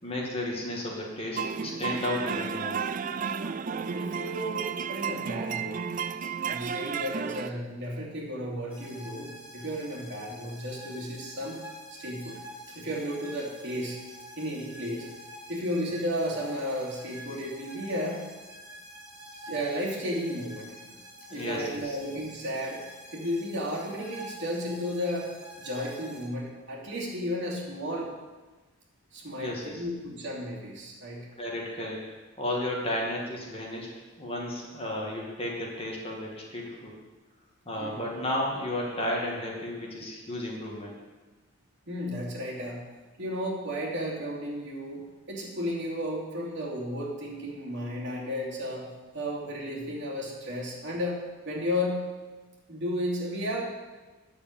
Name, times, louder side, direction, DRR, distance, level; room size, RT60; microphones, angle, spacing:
voice 1, 0.0-2.8 21.3-22.0 29.4-29.8 31.4-32.0 32.4-33.9 34.2-36.9 37.7-41.0, left 1 dB, 25° left, -2 dB, 2.2 m, -33 dB
sound 1, 1.4-7.5, right 6 dB, 35° right, 0.3 m, -32 dB
voice 2, 3.9-5.8 6.4-12.4 12.7-14.0 14.4-15.1 15.5-18.2 19.3-21.0 21.3-25.3 25.6-28.1 29.1-31.3 37.8-38.0 41.9-42.8 43.2-48.9 49.1-52.0 52.7-53.6, equal, 55° right, -4 dB, 2.8 m, -33 dB
sound 2, 8.7-26.2, equal, 5° right, 4.5 m, -47 dB
9.5 x 6.8 x 8.7 m, 1.2 s
head